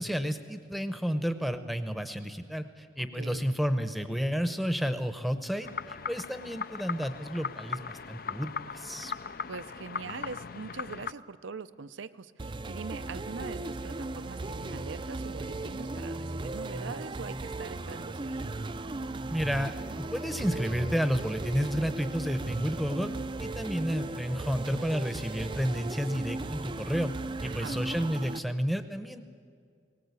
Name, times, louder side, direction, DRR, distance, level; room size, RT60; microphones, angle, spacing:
voice 1, 0.0-5.7 6.1-9.1 19.3-23.1 23.4-27.1 27.4-29.2, equal, ahead, 9 dB, 0.8 m, -31 dB
voice 2, 3.0-3.5 9.5-18.5 27.4-27.8, right 4 dB, 85° right, 14 dB, 0.6 m, -42 dB
sound 1, 5.6-11.1, left 5 dB, 50° left, 0.5 m, -38 dB
sound 2, 12.4-28.4, right 2 dB, 25° right, 0.4 m, -37 dB
20.5 x 18.0 x 8.3 m, 2.1 s
head